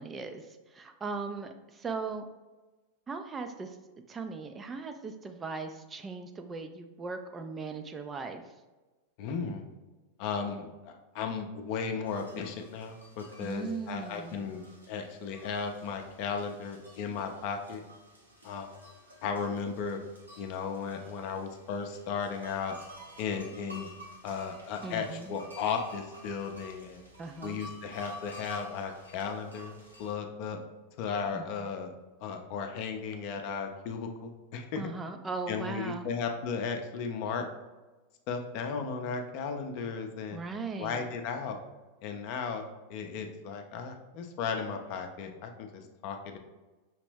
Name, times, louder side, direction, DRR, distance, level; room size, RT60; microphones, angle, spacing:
voice 1, 0.0-2.2 3.1-3.8 4.1-8.5 13.4-14.5 24.8-25.3 27.2-27.6 31.3-31.7 34.8-36.1 40.3-41.1, right 4 dB, 20° right, 6 dB, 0.3 m, -38 dB
voice 2, 9.2-9.7 10.2-17.8 18.4-18.7 19.2-20.0 20.4-22.8 23.2-23.9 24.2-27.0 27.4-30.6 31.0-31.9 32.2-34.8 35.5-37.5 38.3-40.4 40.8-41.6 42.0-46.4, left 5 dB, 45° left, 5 dB, 0.5 m, -35 dB
sound 1, 12.0-30.1, equal, 85° right, 1.0 m, -51 dB
5.6 x 2.9 x 3.2 m, 1.2 s
figure-of-eight pair, 90°, 0 cm